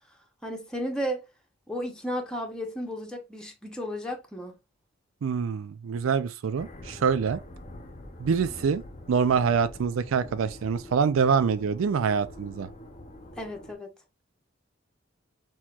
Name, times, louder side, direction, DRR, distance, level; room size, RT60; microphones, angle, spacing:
voice 1, 0.4-1.2 1.7-4.5 13.3-13.9, equal, 5° left, 1.0 m, -33 dB
voice 2, 5.2-7.4 8.2-8.8 9.1-12.7, right 6 dB, 80° right, 0.4 m, -25 dB
sound 1, 6.6-13.7, left 1 dB, 35° left, 0.8 m, -45 dB
6.2 x 2.9 x 2.4 m
head